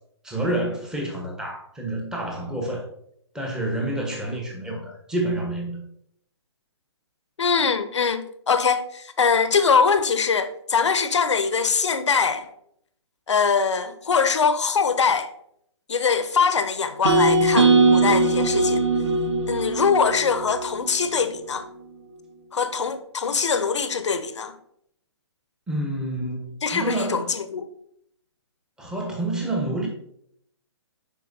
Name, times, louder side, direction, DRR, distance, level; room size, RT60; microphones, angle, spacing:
voice 1, 0.2-2.9 3.3-5.9 25.7-27.4 28.8-29.9, right 1 dB, 5° right, 1.2 m, -28 dB
voice 2, 7.4-12.5 13.3-15.3 15.9-18.8 19.5-21.7 22.5-24.6 26.6-27.7, left 5 dB, 80° left, 0.8 m, -22 dB
sound 1, 17.0-21.2, right 3 dB, 90° right, 1.1 m, -20 dB
10.5 x 4.4 x 2.7 m
hypercardioid pair, 150°, 15 cm